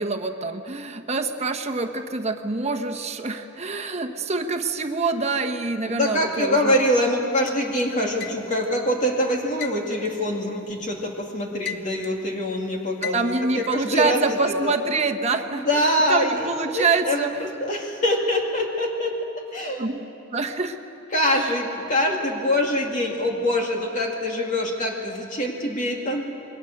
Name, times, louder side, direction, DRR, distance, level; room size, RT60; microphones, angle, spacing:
voice 1, 0.0-6.7 13.0-17.4 19.8-20.0 20.3-20.8 21.3-21.5, right 3 dB, 35° right, 6 dB, 1.2 m, -26 dB
voice 2, 5.9-14.2 14.5-14.7 15.5-16.5 16.7-19.1 19.5-19.8 21.1-26.2, left 1 dB, 40° left, 0 dB, 2.4 m, -24 dB
sound 1, 7.5-8.8 9.6-11.0 11.3-12.3 13.0-13.9, left 9 dB, 55° left, 0.8 m, -36 dB
28.0 x 22.5 x 6.7 m, 2.9 s
head